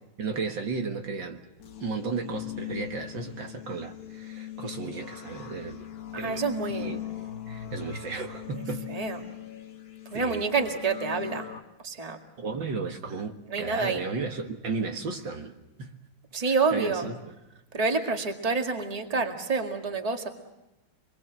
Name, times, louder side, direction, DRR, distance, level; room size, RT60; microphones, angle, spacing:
voice 1, 0.2-1.4 1.8-5.8 6.2-6.4 6.7-7.0 7.5-8.9 10.1-10.5 12.4-15.9 16.4-17.2, right 4 dB, 65° right, 4 dB, 2.3 m, -34 dB
sound 1, 1.6-11.6, left 11 dB, 50° left, 1.5 m, -40 dB
voice 2, 6.1-7.1 8.5-8.6 8.9-9.2 10.1-11.5 11.8-12.2 13.5-14.1 16.3-17.1 17.7-20.3, right 4 dB, 20° right, 4 dB, 2.0 m, -28 dB
27.0 x 22.5 x 7.5 m, 0.95 s
omnidirectional pair, 2.3 m